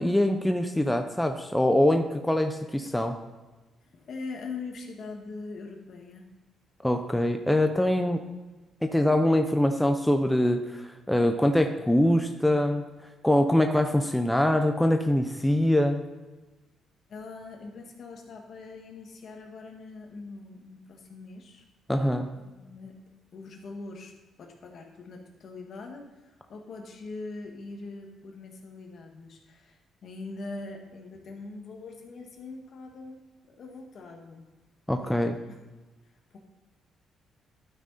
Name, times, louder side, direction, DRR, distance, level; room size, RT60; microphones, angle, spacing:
voice 1, 0.0-3.2 6.8-8.2 8.8-12.8 13.2-16.0 21.9-22.3 34.9-35.3, left 1 dB, 5° left, 5 dB, 0.7 m, -24 dB
voice 2, 3.8-6.3 17.1-21.6 22.4-22.9 23.3-24.1 24.4-34.5 35.0-35.6 36.3-36.4, left 3 dB, 60° left, 2 dB, 1.7 m, -42 dB
12.0 x 6.1 x 4.2 m, 1.2 s
cardioid pair, 90°, 0 cm